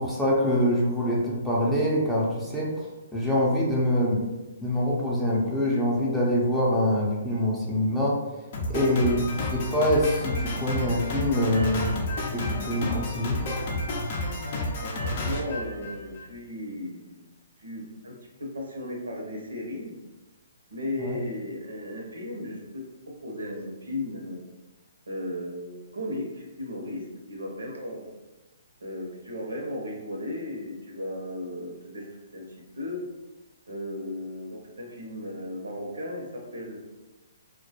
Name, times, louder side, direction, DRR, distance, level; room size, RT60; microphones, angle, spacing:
voice 1, 0.0-2.9 3.1-4.3 4.6-8.2 8.7-9.2 9.5-11.9 12.3-13.4 21.0-21.2, equal, ahead, -6 dB, 0.5 m, -25 dB
Drum kit, 8.5-16.3, left 2 dB, 50° left, 0.5 m, -31 dB
voice 2, 8.7-9.0 14.8-17.2 17.6-20.0 20.7-24.4 25.1-28.1 28.8-32.1 32.3-32.5 32.8-33.0 33.7-36.8, left 1 dB, 85° right, -1 dB, 0.7 m, -36 dB
2.2 x 2.0 x 2.8 m, 1.1 s
hypercardioid pair, 135°, 0 cm